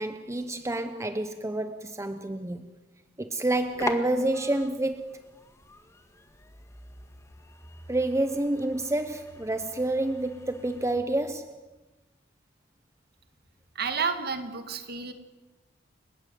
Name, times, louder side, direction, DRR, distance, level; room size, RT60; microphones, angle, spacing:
voice 1, 0.0-2.7 3.2-5.1 7.9-11.5, right 1 dB, 15° right, 9 dB, 0.9 m, -28 dB
sound 1, 3.4-11.0, left 2 dB, 15° left, 1.8 m, -43 dB
voice 2, 13.7-15.1, right 5 dB, 55° right, 8 dB, 2.2 m, -30 dB
29.5 x 17.0 x 7.6 m, 1.2 s
head